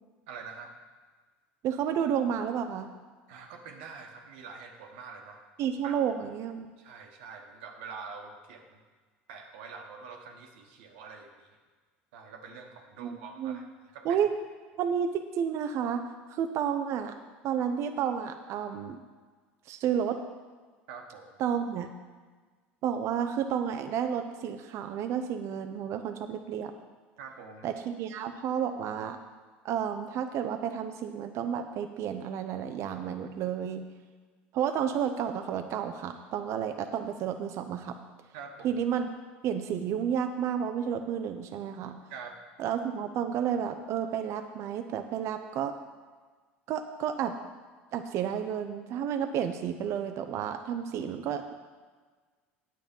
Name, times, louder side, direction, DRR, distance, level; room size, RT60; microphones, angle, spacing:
voice 1, 0.3-0.7 3.3-5.4 5.8-6.0 6.8-8.8 9.3-11.5 12.1-13.7 13.9-14.2 20.9-21.4 27.2-27.7 38.3-38.8 42.1-42.4, right 5 dB, 75° right, 3 dB, 1.3 m, -45 dB
voice 2, 1.6-2.9 5.6-6.7 13.0-13.6 14.0-14.3 14.8-17.1 17.4-19.0 19.7-20.2 21.4-21.9 22.8-26.7 27.6-29.2 29.6-33.8 34.5-37.9 38.6-39.1 39.4-42.0 42.6-45.7 46.7-47.3 47.9-51.5, right 8 dB, 55° right, 7 dB, 0.7 m, -31 dB
9.3 x 7.5 x 5.3 m, 1.4 s
hypercardioid pair, 80°, 6 cm